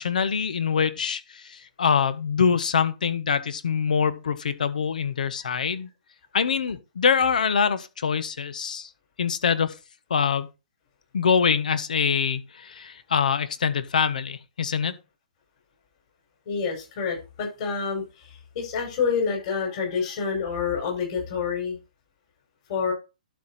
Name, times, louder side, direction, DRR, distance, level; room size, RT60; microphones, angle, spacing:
voice 1, 0.0-5.9 6.3-8.9 9.2-9.7 10.1-10.5 11.1-14.9, left 6 dB, 70° left, 1.1 m, -24 dB
voice 2, 16.5-21.8 22.7-22.9, left 6 dB, 50° left, 5.4 m, -28 dB
11.5 x 4.7 x 4.1 m
hypercardioid pair, 130°, 4 cm